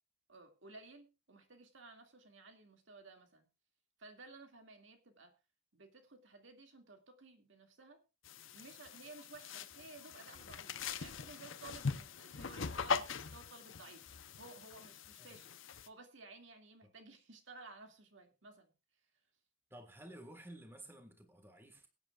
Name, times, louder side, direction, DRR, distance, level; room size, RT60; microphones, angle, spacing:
voice 1, 0.3-3.5 4.0-5.3 5.7-8.0 8.5-14.1 14.4-18.7, right 3 dB, 70° right, 2.3 m, -56 dB
sound 1, 8.2-15.9, left 5 dB, 75° left, 0.8 m, -42 dB
voice 2, 19.7-21.9, right 1 dB, 10° right, 1.7 m, -53 dB
22.5 x 9.1 x 2.4 m
head